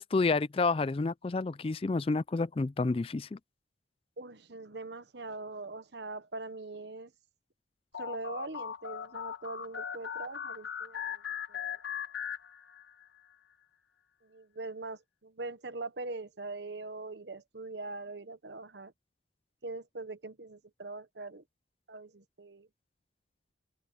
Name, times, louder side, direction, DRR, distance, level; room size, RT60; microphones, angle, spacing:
voice 1, 0.0-3.4, left 3 dB, 30° left, 0.3 m, -29 dB
voice 2, 4.2-7.1 8.0-11.2 11.5-11.6 14.2-18.9 19.6-21.4 21.9-22.7, right 3 dB, 65° right, 1.1 m, -42 dB
sound 1, 7.9-13.0, left 8 dB, 75° left, 1.5 m, -39 dB
open air
head